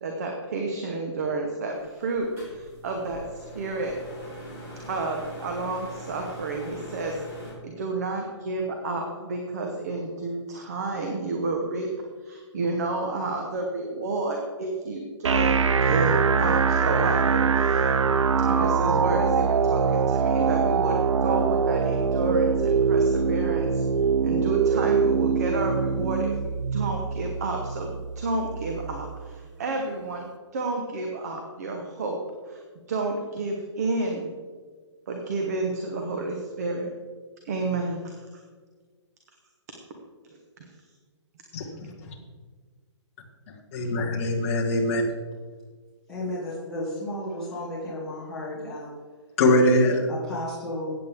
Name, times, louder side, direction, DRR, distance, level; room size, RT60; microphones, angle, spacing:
voice 1, 0.0-3.9 4.8-11.9 12.2-15.5 15.8-17.8 18.5-23.8 24.2-30.3 30.5-32.2 32.4-32.6 32.9-34.3 35.1-36.9 37.4-38.2, right 3 dB, 35° right, 2 dB, 1.2 m, -30 dB
sound 1, 1.7-7.5, equal, 15° right, 3.4 m, -42 dB
sound 2, 15.2-29.2, right 5 dB, 90° right, 0.8 m, -23 dB
voice 2, 43.7-45.0 49.4-50.1, left 1 dB, 25° left, -2 dB, 1.8 m, -21 dB
voice 3, 46.1-48.9 50.1-50.9, left 1 dB, 5° left, -11 dB, 1.8 m, -33 dB
15.0 x 9.1 x 3.7 m, 1.5 s
hypercardioid pair, 175°, 15 cm